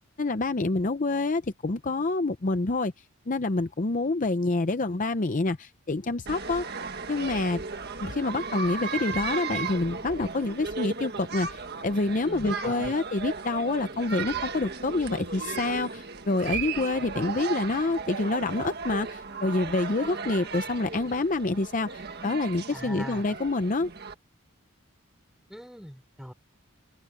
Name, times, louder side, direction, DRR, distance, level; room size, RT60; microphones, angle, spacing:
voice 1, 0.2-2.9 3.3-6.8 7.1-7.6 8.0-23.9, left 2 dB, 35° left, 0.6 m, -27 dB
sound 1, 6.3-24.1, right 5 dB, 50° right, 1.7 m, -36 dB
voice 2, 12.3-12.9 22.7-23.2 25.5-26.3, equal, ahead, 3.8 m, -41 dB
open air
head